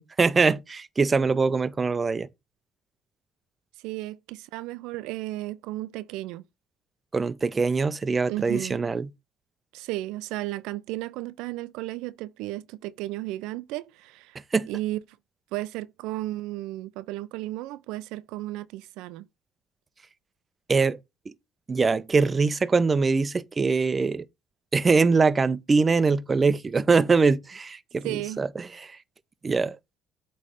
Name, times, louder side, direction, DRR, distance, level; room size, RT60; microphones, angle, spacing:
voice 1, 0.0-2.3 7.1-9.1 14.5-14.7 20.7-21.0 21.3-21.4 21.7-24.3 24.7-29.0 29.4-29.8, right 4 dB, 25° right, 0.5 m, -23 dB
voice 2, 3.8-6.4 8.3-8.8 9.7-14.4 14.7-15.0 15.5-19.3 28.0-28.4, right 17 dB, 85° right, 0.4 m, -34 dB
8.3 x 3.2 x 5.0 m
cardioid pair, 95°, 0 cm